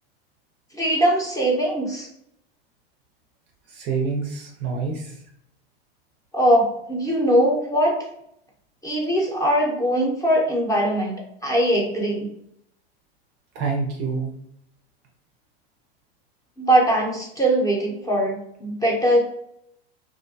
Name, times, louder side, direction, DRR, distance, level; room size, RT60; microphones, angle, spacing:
voice 1, 0.7-2.1 6.3-7.9 8.8-11.2 11.4-12.3 16.6-19.3, right 1 dB, 10° left, -2 dB, 0.7 m, -21 dB
voice 2, 3.7-5.2 13.5-14.3, right 4 dB, 40° right, 1 dB, 0.5 m, -27 dB
2.6 x 2.2 x 2.6 m, 0.73 s
hypercardioid pair, 115°, 30 cm